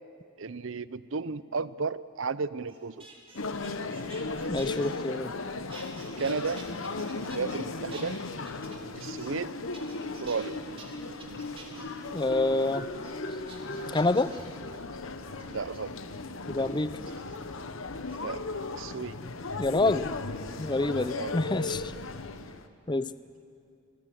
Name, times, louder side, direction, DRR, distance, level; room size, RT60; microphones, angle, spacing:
voice 1, 0.4-3.1 6.2-6.6 7.3-8.2 9.0-9.5 10.2-10.6 15.5-16.0 18.2-18.4 18.8-19.2 20.9-21.4 22.4-22.5, right 4 dB, 60° right, 17 dB, 0.6 m, -33 dB
sound 1, 2.7-5.4 5.7-7.6 7.9-9.5 9.7-10.4 10.8-10.9 11.2-11.9 12.3-12.7 13.0-13.1 13.5-14.6 15.4-15.8 17.0-17.4 18.0-18.2 18.8-19.4 20.8-22.0 22.2-22.6, right 3 dB, 25° right, 3.0 m, -50 dB
sound 2, 3.4-22.7, left 3 dB, 65° left, 1.0 m, -37 dB
voice 2, 4.5-5.3 12.1-12.9 13.9-14.3 16.5-16.9 19.6-20.1 20.6-21.9 22.9-23.1, left 2 dB, 20° left, 15 dB, 0.5 m, -27 dB
Marimba xylophone, 8.6-9.5 10.0-15.5, left 2 dB, 45° left, 1.9 m, -42 dB
27.0 x 20.0 x 7.8 m, 2.4 s
head